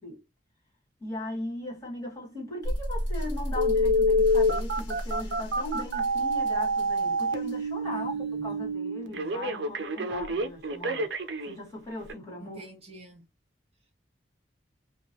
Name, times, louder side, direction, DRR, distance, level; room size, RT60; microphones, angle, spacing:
voice 1, 1.0-11.1 11.5-12.6, left 1 dB, 20° left, 1.6 m, -38 dB
sound 1, 2.6-8.7, equal, 75° left, 1.0 m, -34 dB
Telephone, 3.6-11.5 12.1-12.2, equal, 70° right, 0.5 m, -27 dB
voice 2, 7.8-9.5 12.4-13.3, right 1 dB, 35° right, 0.9 m, -50 dB
2.9 x 2.3 x 2.7 m
head